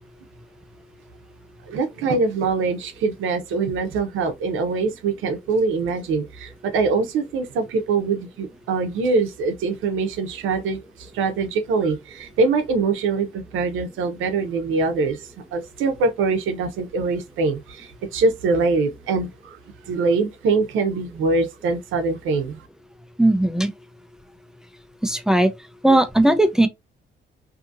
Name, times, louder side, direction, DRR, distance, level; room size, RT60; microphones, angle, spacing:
voice 1, 1.7-15.2 15.5-19.6 19.9-22.6, right 4 dB, 85° right, 0.7 m, -23 dB
voice 2, 23.2-23.7 25.0-25.5 25.8-26.7, right 1 dB, 5° right, 0.4 m, -17 dB
2.7 x 2.6 x 2.5 m
cardioid pair, 90°, 20 cm